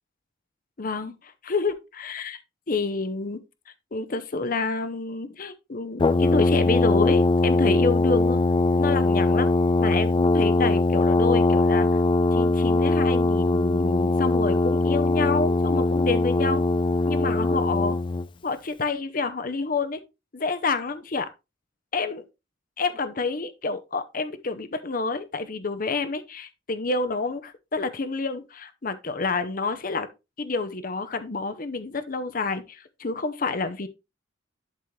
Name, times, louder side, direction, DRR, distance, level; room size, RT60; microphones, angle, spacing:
voice 1, 0.8-2.4 2.7-3.4 3.9-8.4 8.7-9.5 9.8-11.9 12.3-16.6 17.1-18.0 18.4-20.0 20.3-21.3 21.9-22.2 22.8-30.1 30.4-33.9, left 4 dB, 45° left, 0.7 m, -28 dB
Brass instrument, 6.0-18.3, left 2 dB, 25° left, 0.3 m, -21 dB
11.5 x 4.3 x 3.2 m
head